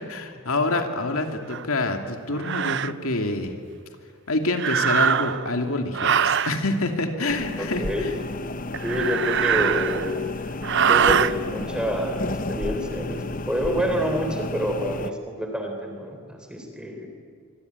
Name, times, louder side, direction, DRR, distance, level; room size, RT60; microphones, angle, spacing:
voice 1, 0.0-3.6 4.3-8.1, left 2 dB, 70° left, 5 dB, 2.6 m, -26 dB
sound 1, 1.5-1.6 2.4-2.9 4.5-5.5 5.9-6.6 8.7-10.2 10.6-11.3, right 8 dB, 50° right, 0.6 m, -22 dB
sound 2, 7.3-15.1, left 2 dB, 35° left, 0.8 m, -32 dB
voice 2, 7.6-8.1 8.8-10.3 10.9-17.1, equal, 5° right, 4 dB, 3.6 m, -28 dB
25.0 x 24.5 x 9.6 m, 2.3 s
head